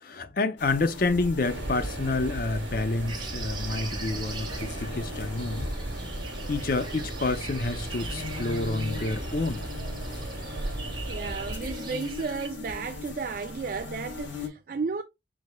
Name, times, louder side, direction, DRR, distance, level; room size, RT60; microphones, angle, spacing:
voice 1, 0.0-5.7 6.5-9.6, left 3 dB, 50° left, 0.5 m, -29 dB
sound 1, 0.6-14.5, left 3 dB, 80° left, 1.3 m, -40 dB
sound 2, 1.4-11.5, right 1 dB, 80° right, 1.4 m, -36 dB
sound 3, 3.1-12.5, right 4 dB, 25° right, 0.9 m, -42 dB
voice 2, 11.1-15.0, right 4 dB, 50° right, 0.3 m, -33 dB
4.7 x 4.2 x 2.2 m
head